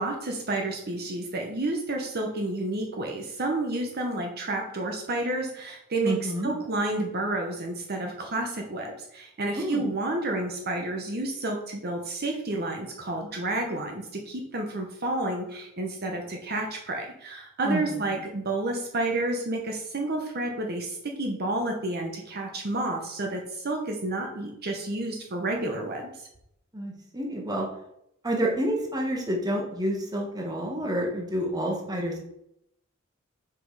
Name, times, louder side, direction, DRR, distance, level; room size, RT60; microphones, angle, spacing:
voice 1, 0.0-26.3, right 2 dB, 50° right, 1 dB, 0.9 m, -30 dB
voice 2, 6.0-6.5 9.6-9.8 17.6-17.8 26.7-27.7 28.2-32.2, right 1 dB, 20° right, 0 dB, 1.4 m, -28 dB
6.1 x 5.1 x 4.8 m, 0.78 s
head